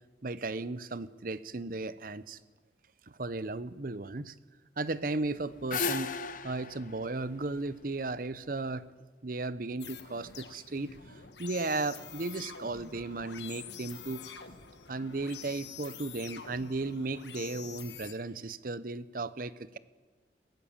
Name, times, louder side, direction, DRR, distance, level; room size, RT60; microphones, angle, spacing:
voice 1, 0.2-2.4 3.1-4.3 4.8-8.9 9.2-14.4 14.9-19.8, right 3 dB, 50° right, 16 dB, 0.8 m, -35 dB
sound 1, 5.2-8.4, left 5 dB, 50° left, 1.1 m, -36 dB
sound 2, 9.8-18.1, left 7 dB, 80° left, 1.5 m, -47 dB
22.0 x 18.5 x 7.3 m, 1.4 s
head